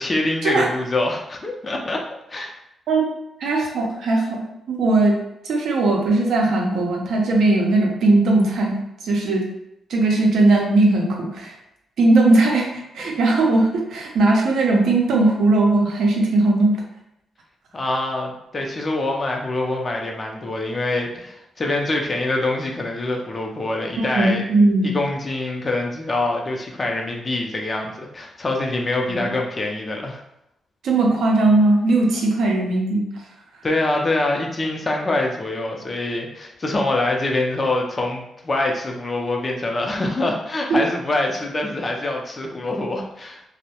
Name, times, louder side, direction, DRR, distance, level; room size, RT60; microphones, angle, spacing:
voice 1, 0.0-2.0 2.3-2.6 17.7-24.4 24.8-30.2 33.6-43.4, left 2 dB, 35° left, 1 dB, 0.5 m, -25 dB
voice 2, 3.4-5.2 5.4-8.8 9.0-9.4 9.9-11.5 12.0-16.8 24.0-25.0 29.1-29.2 30.8-33.0 40.7-40.8, right 2 dB, 75° right, 0 dB, 0.5 m, -18 dB
2.1 x 2.0 x 2.8 m, 0.83 s
cardioid pair, 65°, 0 cm